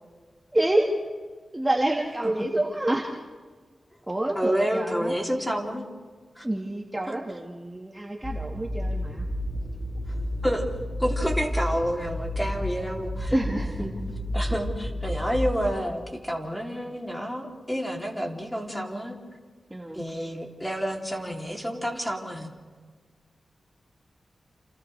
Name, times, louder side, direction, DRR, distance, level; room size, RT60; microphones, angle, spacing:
voice 1, 0.5-0.9 1.5-3.1 4.1-5.1 6.4-9.2 13.3-13.7 19.7-20.0, right 1 dB, 15° right, 1 dB, 1.5 m, -27 dB
voice 2, 4.3-5.9 6.4-6.5 10.4-10.7 11.0-13.3 13.8-14.0 14.3-19.2 19.9-22.5, equal, 5° left, 1 dB, 2.9 m, -29 dB
sound 1, 8.2-15.6, left 1 dB, 20° left, 7.5 m, -31 dB
29.0 x 28.5 x 3.3 m, 1.5 s
wide cardioid pair, 90°, 0 cm